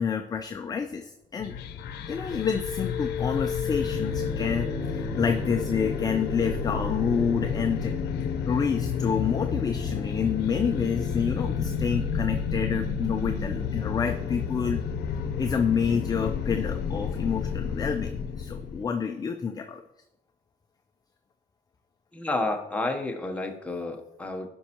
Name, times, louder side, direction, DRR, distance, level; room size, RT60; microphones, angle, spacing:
voice 1, 0.0-1.6 2.1-7.9 8.5-14.8 15.4-19.8, left 6 dB, 25° left, 6 dB, 0.5 m, -28 dB
sound 1, 1.4-18.8, left 6 dB, 75° left, 0.7 m, -31 dB
sound 2, 3.8-18.4, left 1 dB, 40° left, 1.4 m, -40 dB
voice 2, 22.1-24.5, left 2 dB, 10° left, 3 dB, 1.0 m, -30 dB
11.5 x 5.3 x 3.0 m, 0.87 s
cardioid pair, 110°, 17 cm